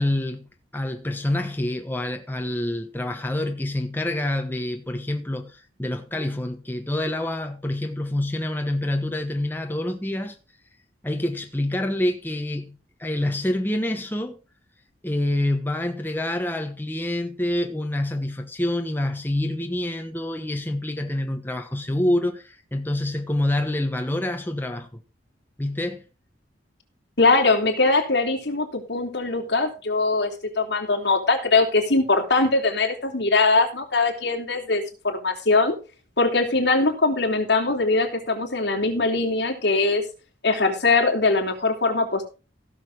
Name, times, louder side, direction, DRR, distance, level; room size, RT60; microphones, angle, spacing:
voice 1, 0.0-10.4 11.0-14.4 15.0-25.0 25.6-26.0, left 1 dB, 10° left, 1.0 m, -27 dB
voice 2, 27.2-30.3 30.6-35.8 36.2-40.0 40.4-42.2, left 3 dB, 60° left, 3.2 m, -21 dB
16.0 x 6.7 x 4.8 m
head